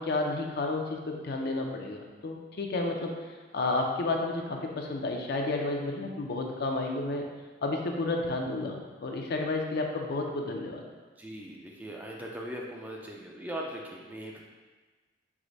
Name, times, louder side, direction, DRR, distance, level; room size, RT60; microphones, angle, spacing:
voice 1, 0.0-3.2 3.5-7.3 7.6-10.8, left 2 dB, 55° left, 1 dB, 0.5 m, -31 dB
voice 2, 11.2-14.4, right 1 dB, 10° right, -2 dB, 0.3 m, -40 dB
4.7 x 2.1 x 3.9 m, 1.3 s
head